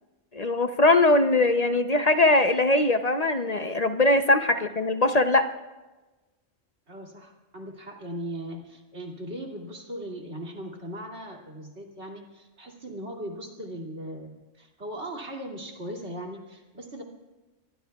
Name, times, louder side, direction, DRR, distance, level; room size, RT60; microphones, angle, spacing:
voice 1, 0.3-5.5, left 2 dB, 40° left, 7 dB, 0.8 m, -21 dB
voice 2, 6.9-17.0, right 1 dB, 70° right, 0 dB, 2.9 m, -38 dB
27.0 x 22.5 x 2.4 m, 1.2 s
omnidirectional pair, 1.2 m